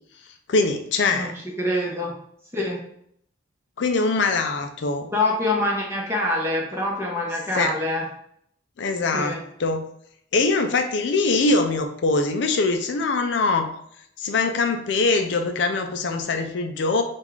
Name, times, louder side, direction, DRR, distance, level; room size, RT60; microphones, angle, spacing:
voice 1, 0.5-1.3 3.8-5.1 7.6-7.7 8.8-9.9 10.3-13.7 14.2-17.0, left 3 dB, 60° left, 6 dB, 0.4 m, -23 dB
voice 2, 1.6-2.1 2.5-2.8 5.1-8.0 9.1-9.4, left 1 dB, 15° right, -3 dB, 1.0 m, -25 dB
3.6 x 2.4 x 4.6 m, 0.69 s
head